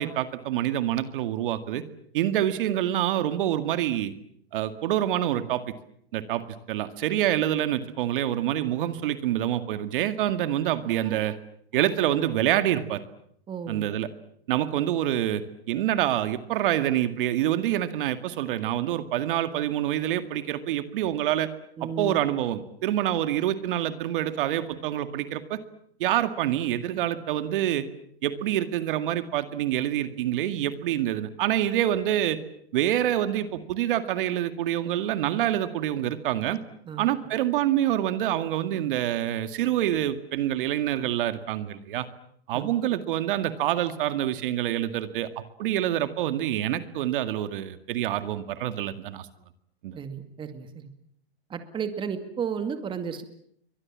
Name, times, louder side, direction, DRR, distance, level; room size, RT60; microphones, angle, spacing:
voice 1, 0.0-1.8 2.1-4.1 4.5-5.6 6.1-11.4 11.7-13.0 13.7-14.1 14.5-21.5 21.8-25.6 26.0-27.9 28.2-32.4 32.7-36.6 37.0-42.1 42.5-49.3 49.8-50.0, right 12 dB, 55° right, 10 dB, 2.1 m, -26 dB
voice 2, 13.5-13.8 21.8-22.1 36.9-37.1 42.5-42.7 49.9-50.9 51.5-53.2, right 6 dB, 15° right, 8 dB, 2.2 m, -33 dB
30.0 x 24.0 x 7.5 m, 0.69 s
hypercardioid pair, 150°, 31 cm